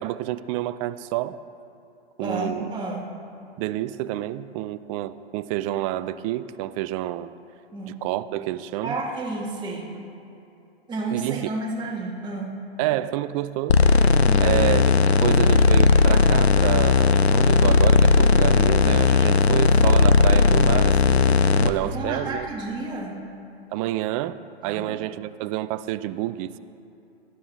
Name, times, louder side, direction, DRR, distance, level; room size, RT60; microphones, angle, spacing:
voice 1, 0.0-1.4 2.2-2.7 3.6-7.3 8.0-9.0 11.1-11.5 12.8-13.8 14.4-14.9 15.2-22.5 23.7-26.6, right 15 dB, 35° right, 0.5 m, -28 dB
voice 2, 2.2-3.1 7.7-8.0 8.8-9.9 10.9-12.7 14.2-14.6 21.8-23.2 24.6-25.0, right 2 dB, 15° right, 2.0 m, -31 dB
sound 1, 13.7-21.7, left 4 dB, 85° left, 0.8 m, -17 dB
20.0 x 13.0 x 3.4 m
hypercardioid pair, 115°, 31 cm